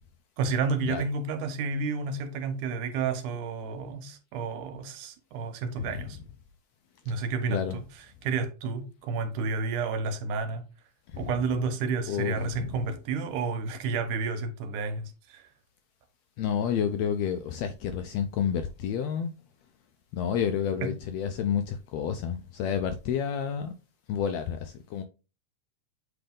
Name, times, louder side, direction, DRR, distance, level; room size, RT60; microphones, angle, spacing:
voice 1, 0.4-6.2 7.1-7.9 8.2-10.6 11.2-15.5 20.8-20.9, right 4 dB, 85° right, 2.4 m, -31 dB
voice 2, 12.1-12.7 16.4-19.3 20.1-23.7 24.1-25.0, left 8 dB, 80° left, 1.6 m, -30 dB
7.8 x 3.4 x 3.6 m
omnidirectional pair, 3.5 m